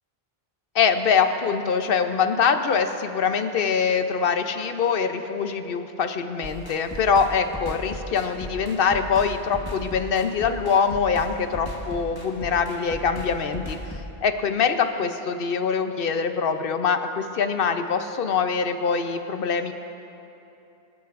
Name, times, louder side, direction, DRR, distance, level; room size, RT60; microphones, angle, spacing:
voice 1, 0.7-13.8 14.2-19.7, left 6 dB, 65° left, 8 dB, 1.0 m, -23 dB
sound 1, 6.4-14.0, left 1 dB, 20° left, 1.3 m, -37 dB
25.5 x 13.0 x 2.6 m, 2.9 s
omnidirectional pair, 1.0 m